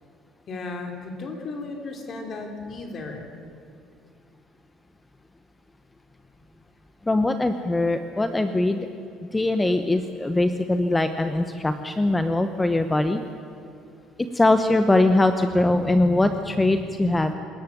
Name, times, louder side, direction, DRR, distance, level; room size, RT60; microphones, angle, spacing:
voice 1, 0.5-3.3, left 3 dB, 40° left, 4 dB, 3.5 m, -35 dB
voice 2, 7.1-8.9 9.3-13.2 14.2-17.3, left 2 dB, 10° left, 8 dB, 1.0 m, -21 dB
26.0 x 14.0 x 9.4 m, 2.5 s
cardioid pair, 115°, 0 cm